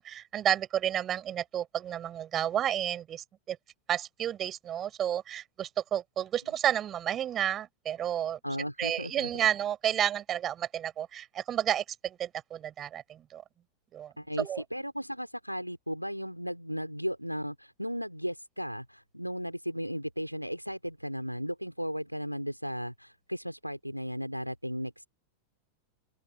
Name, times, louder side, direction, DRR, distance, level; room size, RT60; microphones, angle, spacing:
voice 1, 0.0-3.6 3.9-8.4 8.8-13.4 13.9-14.6, right 10 dB, 30° right, 5.2 m, -31 dB
voice 2, 8.4-9.3 14.2-25.1, equal, 90° right, 3.1 m, -35 dB
open air
figure-of-eight pair, 90°, 0 cm